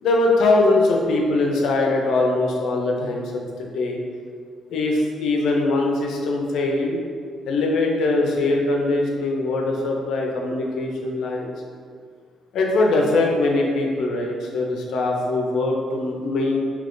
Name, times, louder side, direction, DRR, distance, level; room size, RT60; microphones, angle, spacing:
voice 1, 0.0-3.3 3.6-4.0 4.7-7.0 7.5-11.5 12.5-16.6, left 2 dB, 80° left, 0 dB, 0.5 m, -21 dB
3.5 x 2.9 x 2.5 m, 2.1 s
cardioid pair, 90°, 0 cm